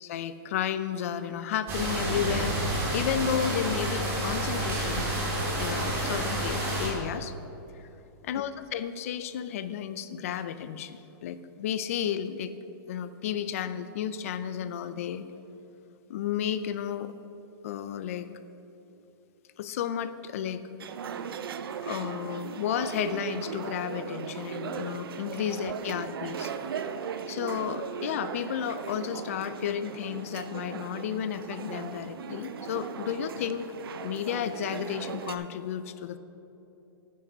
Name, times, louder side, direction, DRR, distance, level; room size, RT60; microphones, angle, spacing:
voice 1, 0.0-2.6 2.9-5.2 5.6-7.3 8.3-12.5 12.9-15.3 16.1-17.1 17.6-18.3 19.6-20.7 21.8-26.5 27.3-33.7 34.0-36.2, left 9 dB, 35° left, 13 dB, 0.4 m, -32 dB
sound 1, 1.7-6.9, right 1 dB, 15° right, 2.0 m, -29 dB
sound 2, 20.8-35.4, right 7 dB, 70° right, 0.6 m, -38 dB
9.4 x 7.5 x 5.6 m, 3.0 s
hypercardioid pair, 170°, 13 cm